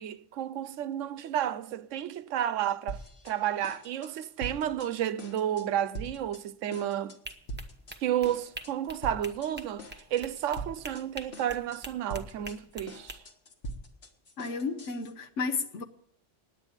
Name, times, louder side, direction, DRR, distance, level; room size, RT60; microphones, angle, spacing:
voice 1, 0.0-7.2 8.0-13.2, right 10 dB, 80° right, 1.0 m, -32 dB
sound 1, 2.9-3.4 3.6-4.9 5.2-5.7 5.9-6.4 6.7-8.0 8.2-8.7 9.0-9.5 9.8-11.0 11.3-11.8 12.1-15.1, right 2 dB, 55° left, 1.6 m, -42 dB
sound 2, 7.2-13.2, right 1 dB, 10° right, 0.9 m, -45 dB
voice 2, 14.4-15.8, left 4 dB, 75° left, 1.2 m, -32 dB
9.8 x 9.0 x 8.8 m
omnidirectional pair, 1.3 m